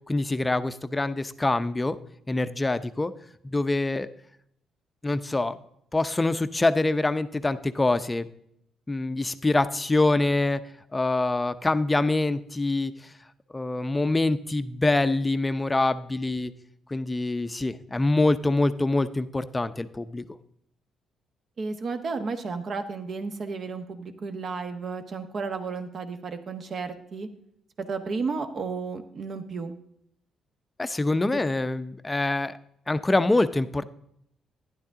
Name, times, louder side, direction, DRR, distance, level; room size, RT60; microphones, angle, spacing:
voice 1, 0.1-2.0 2.3-3.1 3.4-4.1 5.0-5.6 5.9-8.3 8.9-10.6 10.9-12.9 13.5-16.5 16.9-20.2 30.8-32.6 32.9-33.8, left 2 dB, 20° left, 12 dB, 0.6 m, -25 dB
voice 2, 21.6-27.3 27.9-29.7 31.3-31.4, right 4 dB, 50° right, 8 dB, 1.2 m, -33 dB
11.5 x 10.5 x 3.7 m, 0.73 s
cardioid pair, 90°, 0 cm